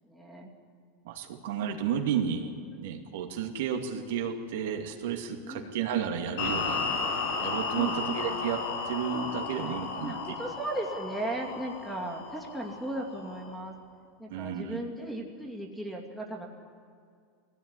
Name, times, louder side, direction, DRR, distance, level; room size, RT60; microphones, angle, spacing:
voice 1, 0.0-0.5 2.7-2.9 5.4-5.7 7.7-7.9 8.3-8.4 10.0-13.7 14.2-16.5, right 1 dB, ahead, 0 dB, 2.5 m, -37 dB
voice 2, 1.0-2.5 2.8-6.9 7.4-10.1 14.3-14.8, right 8 dB, 80° right, 2 dB, 2.5 m, -32 dB
sound 1, 6.4-13.6, left 4 dB, 75° left, 5.2 m, -34 dB
20.5 x 16.5 x 9.8 m, 2.2 s
supercardioid pair, 150°, 0 cm